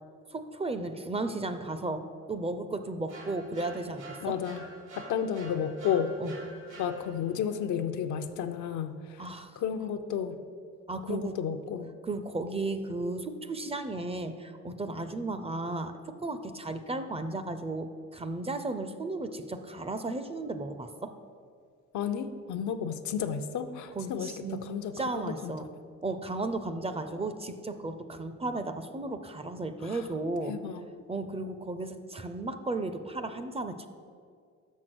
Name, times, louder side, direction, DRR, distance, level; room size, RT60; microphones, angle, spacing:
voice 1, 0.3-4.4 6.2-6.3 9.2-9.6 10.9-11.3 12.0-21.1 24.0-24.6 24.9-25.7 26.0-30.5 31.1-33.9, right 2 dB, 20° right, 10 dB, 0.5 m, -34 dB
sound 1, 3.1-7.4, right 2 dB, 75° right, 1.7 m, -48 dB
voice 2, 4.2-4.6 5.0-6.2 6.8-9.3 9.6-10.4 11.1-11.9 21.9-25.5 29.8-30.0 30.5-30.8, left 8 dB, 75° left, 8 dB, 0.6 m, -32 dB
6.4 x 5.9 x 6.1 m, 2.2 s
cardioid pair, 90°, 30 cm